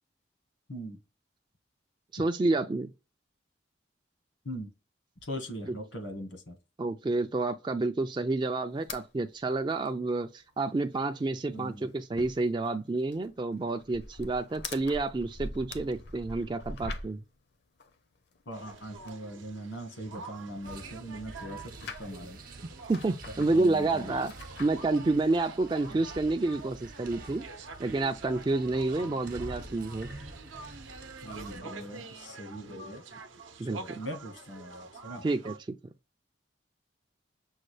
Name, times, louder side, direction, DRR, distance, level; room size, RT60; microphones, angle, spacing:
voice 1, 0.7-1.0 4.4-4.7 5.2-6.6 11.5-11.9 18.4-22.4 23.5-24.2 25.9-26.0 29.0-29.1 31.2-33.0 33.6-35.2, equal, 80° left, 1.5 m, -41 dB
voice 2, 2.1-2.9 6.8-17.2 22.9-24.3 24.6-27.4 27.8-30.1 33.6-33.8 35.2-35.5, right 2 dB, 25° right, 0.3 m, -29 dB
sound 1, 8.8-9.1 9.4-9.5 9.7-9.9 10.3-10.4 10.7-11.2 11.5-17.3 17.8-19.2 19.7-21.1 21.4-22.3 22.8-23.8 24.2-24.8, left 2 dB, 55° left, 0.6 m, -44 dB
sound 2, 18.5-35.6, right 3 dB, 80° right, 0.7 m, -47 dB
sound 3, 20.6-31.6, right 2 dB, 45° right, 0.8 m, -48 dB
6.4 x 2.3 x 3.2 m
head